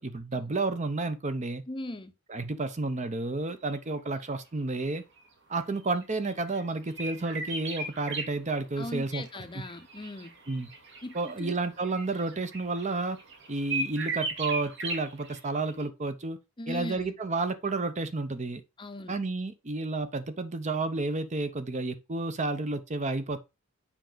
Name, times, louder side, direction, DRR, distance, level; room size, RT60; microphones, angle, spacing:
voice 1, 0.0-1.6 2.3-5.0 5.5-9.2 9.5-9.6 10.5-10.7 11.1-13.2 13.5-16.4 16.7-18.6 19.1-23.4, right 3 dB, 35° right, 0.7 m, -31 dB
voice 2, 1.7-2.1 8.8-10.3 11.0-11.6 16.6-17.1 18.8-19.2, left 1 dB, 25° left, 0.6 m, -39 dB
sound 1, 5.8-8.3 9.0-15.4 15.7-15.8, right 3 dB, 55° right, 1.9 m, -37 dB
7.3 x 5.1 x 3.9 m
head